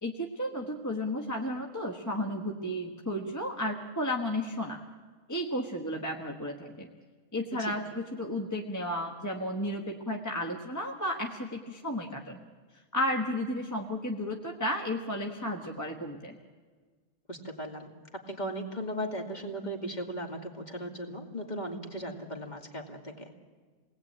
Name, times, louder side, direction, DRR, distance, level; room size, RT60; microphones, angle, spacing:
voice 1, 0.0-4.8 5.3-6.9 7.3-12.5 12.9-16.4, left 1 dB, 15° left, 1 dB, 1.3 m, -33 dB
voice 2, 17.3-23.3, equal, 30° left, 2 dB, 2.5 m, -37 dB
28.5 x 19.5 x 8.8 m, 1.5 s
omnidirectional pair, 1.4 m